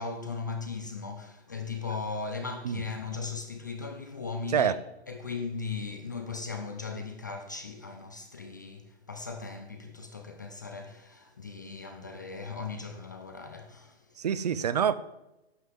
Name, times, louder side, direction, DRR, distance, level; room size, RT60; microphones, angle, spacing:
voice 1, 0.0-4.8 5.1-14.0, left 4 dB, 20° left, 0.4 m, -38 dB
voice 2, 14.2-14.9, right 8 dB, 40° right, 0.6 m, -26 dB
11.5 x 5.5 x 7.8 m
hypercardioid pair, 160°, 32 cm